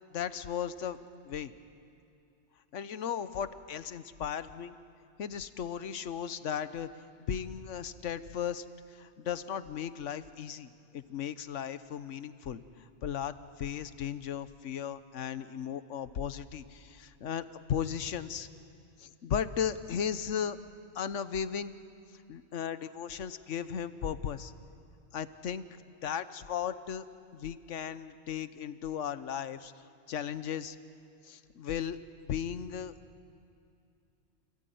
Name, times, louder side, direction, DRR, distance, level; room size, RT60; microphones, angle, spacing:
voice 1, 0.1-1.0 1.2-1.5 2.7-4.7 5.2-6.9 7.3-18.5 19.0-20.6 20.9-21.8 22.3-24.5 25.1-25.7 26.0-27.0 27.3-29.7 30.1-30.8 31.2-32.0 32.2-32.9, left 8 dB, 80° left, 13 dB, 1.2 m, -36 dB
28.5 x 18.0 x 9.3 m, 2.6 s
omnidirectional pair, 1.3 m